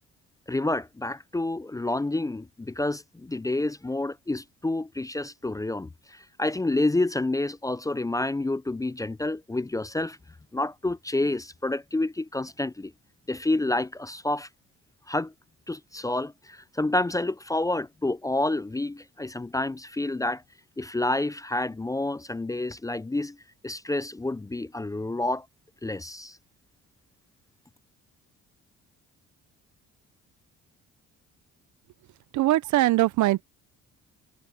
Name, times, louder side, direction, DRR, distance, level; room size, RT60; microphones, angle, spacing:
voice 1, 0.5-10.2 10.5-12.9 13.3-14.5 15.1-15.3 15.7-20.4 20.8-23.4 23.6-25.5 25.8-26.4, left 2 dB, 10° left, 0.4 m, -29 dB
voice 2, 32.3-33.4, right 16 dB, 70° right, 0.6 m, -21 dB
cardioid pair, 90°, 30 cm